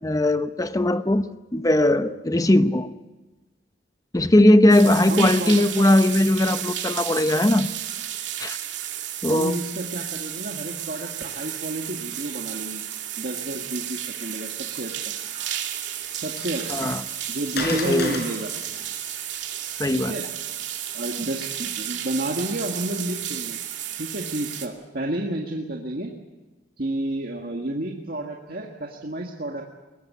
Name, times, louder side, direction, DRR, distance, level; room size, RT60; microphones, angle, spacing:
voice 1, 0.0-2.9 4.1-7.7 8.4-8.6 9.2-9.6 16.7-17.0 17.6-18.2 19.8-20.1, left 1 dB, 20° left, 0.8 m, -19 dB
sound 1, 4.7-24.7, right 11 dB, 75° right, 2.3 m, -33 dB
voice 2, 4.8-5.6 9.3-12.8 13.2-15.1 16.1-16.9 17.3-18.5 19.9-20.3 20.9-23.6 23.9-26.1 26.8-29.6, right 1 dB, 55° right, 1.9 m, -30 dB
Water, 15.3-20.7, left 3 dB, 60° left, 4.9 m, -37 dB
22.0 x 18.5 x 8.4 m
head